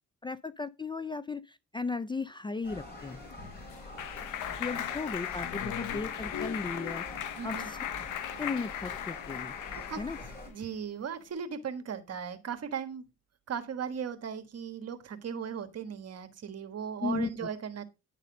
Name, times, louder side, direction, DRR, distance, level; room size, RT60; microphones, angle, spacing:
voice 1, 0.2-3.2 4.6-7.8 8.4-9.5 10.0-10.2 17.0-17.3, left 4 dB, 15° left, 0.4 m, -36 dB
sound 1, 2.6-10.5, left 2 dB, 30° left, 4.3 m, -45 dB
Clapping, 3.1-10.4, left 11 dB, 80° left, 0.9 m, -37 dB
voice 2, 7.4-7.7 9.7-10.1 10.5-13.0 13.5-17.8, right 7 dB, 55° right, 1.5 m, -37 dB
10.5 x 4.1 x 5.2 m
cardioid pair, 90°, 30 cm